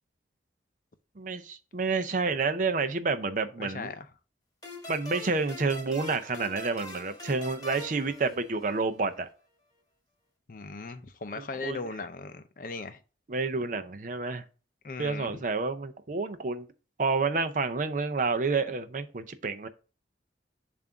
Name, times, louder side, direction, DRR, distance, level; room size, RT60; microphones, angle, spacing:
voice 1, 1.2-3.9 4.9-9.3 11.4-11.8 13.3-14.4 15.0-16.7 17.0-19.7, right 4 dB, 45° right, 0.5 m, -29 dB
voice 2, 3.6-4.1 10.5-13.0 14.8-15.4, left 3 dB, 45° left, 0.5 m, -38 dB
sound 1, 4.6-9.0, left 1 dB, 20° left, 1.5 m, -43 dB
7.2 x 2.6 x 5.6 m
head